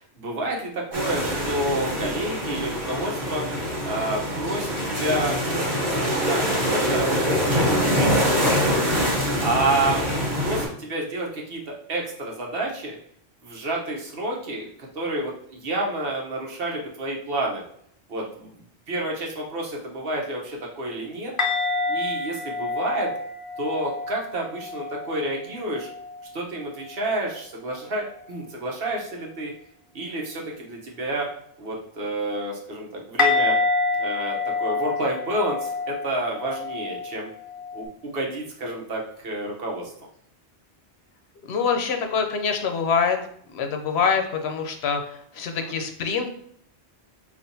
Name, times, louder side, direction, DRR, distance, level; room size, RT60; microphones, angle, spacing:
voice 1, 0.0-3.4 3.8-8.9 9.4-10.1 10.4-13.0 13.4-17.6 18.1-18.5 18.9-21.3 21.9-23.1 23.6-25.9 26.3-29.5 29.9-31.3 31.6-33.6 34.0-37.3 37.7-39.9 45.6-45.7, right 1 dB, 60° right, -1 dB, 1.0 m, -29 dB
sound 1, 0.9-10.7, equal, 45° right, 1.6 m, -24 dB
sound 2, 21.4-25.3 25.7-26.3 33.2-37.8, left 3 dB, 35° left, 0.6 m, -27 dB
voice 2, 41.5-43.2 43.5-46.3, left 6 dB, 75° left, 5 dB, 0.8 m, -25 dB
5.5 x 2.5 x 2.6 m, 0.66 s
omnidirectional pair, 1.1 m